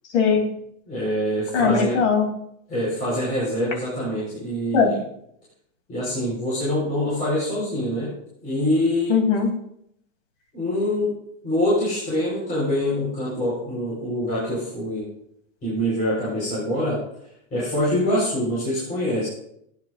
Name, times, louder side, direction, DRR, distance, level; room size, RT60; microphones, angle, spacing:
voice 1, 0.1-0.4 1.5-2.3 4.7-4.9 9.1-9.5, left 6 dB, 55° left, 1 dB, 3.2 m, -19 dB
voice 2, 0.9-2.0 2.7-5.0 5.9-8.1 8.4-9.2 10.5-11.2 11.4-15.0 15.6-17.0 17.5-19.3, left 1 dB, 20° left, -8 dB, 4.5 m, -24 dB
19.0 x 9.7 x 2.5 m, 0.74 s
supercardioid pair, 170°, 43 cm